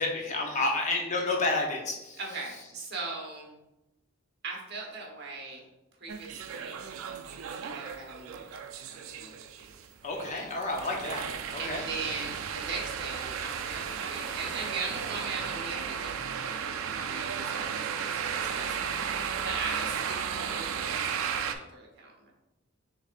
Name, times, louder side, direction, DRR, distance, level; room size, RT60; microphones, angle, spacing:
voice 1, 0.0-2.2 10.0-11.2 11.5-11.8, left 2 dB, 35° left, 0 dB, 0.7 m, -30 dB
voice 2, 2.2-3.5 4.4-5.7 6.0-6.8 7.6-9.3 11.6-19.1 19.4-22.3, right 3 dB, 55° right, -1 dB, 1.0 m, -39 dB
sound 1, 6.1-21.5, right 7 dB, 75° right, 0.4 m, -34 dB
6.2 x 3.3 x 2.4 m, 0.97 s
head